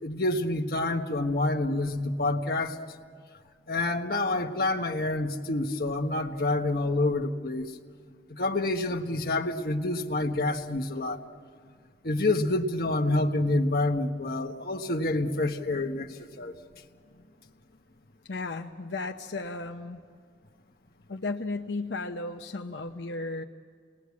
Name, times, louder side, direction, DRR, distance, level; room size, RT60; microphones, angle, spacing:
voice 1, 0.0-2.8 3.7-7.7 8.3-11.2 12.0-16.6, left 2 dB, 55° left, 3 dB, 1.4 m, -28 dB
voice 2, 18.2-20.0 21.1-23.4, left 3 dB, 80° left, 3 dB, 0.8 m, -34 dB
28.5 x 20.5 x 8.5 m, 2.1 s
head